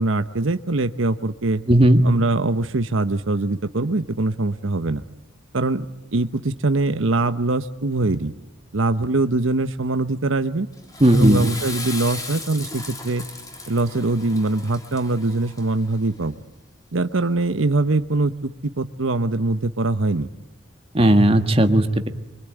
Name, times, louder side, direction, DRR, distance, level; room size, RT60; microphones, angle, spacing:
voice 1, 0.0-1.6 2.0-5.0 5.5-8.3 8.7-10.7 11.1-13.2 13.7-16.4 16.9-20.3, right 2 dB, 90° right, 10 dB, 1.0 m, -23 dB
voice 2, 1.7-2.1 11.0-11.5 20.9-22.1, right 1 dB, 30° right, 7 dB, 1.6 m, -15 dB
Water / Toilet flush, 10.7-16.0, left 3 dB, 20° left, 2.7 m, -36 dB
25.0 x 24.5 x 9.2 m, 1.0 s
head